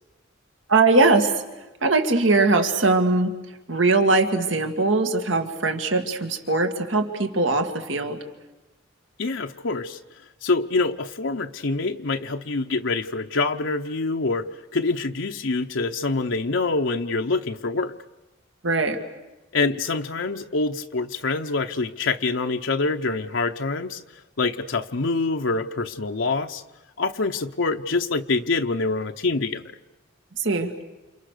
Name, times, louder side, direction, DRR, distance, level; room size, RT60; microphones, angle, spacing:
voice 1, 0.7-1.3 1.8-3.3 3.7-8.2 18.6-19.0 30.4-30.7, right 3 dB, 75° right, 6 dB, 2.3 m, -21 dB
voice 2, 9.2-10.0 10.4-14.5 14.7-17.9 19.5-24.0 24.4-26.6 27.0-29.6, left 3 dB, 75° left, 4 dB, 0.9 m, -25 dB
29.0 x 28.0 x 6.7 m, 1.1 s
head